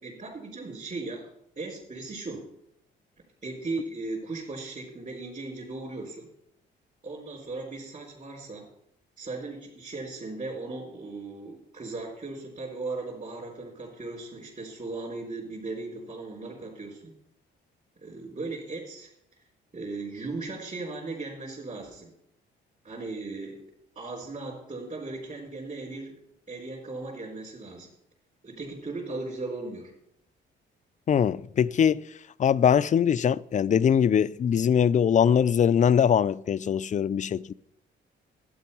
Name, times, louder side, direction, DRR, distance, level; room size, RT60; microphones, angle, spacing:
voice 1, 0.0-1.3 1.6-2.5 3.4-6.3 7.0-8.6 9.2-17.0 18.0-19.1 19.7-22.1 22.8-23.6 24.0-26.2 26.5-27.9 28.4-29.9, right 3 dB, 40° right, 3.9 m, -37 dB
voice 2, 31.1-32.0 32.4-37.5, left 8 dB, 40° left, 0.4 m, -22 dB
12.0 x 9.2 x 5.5 m
cardioid pair, 90°, 20 cm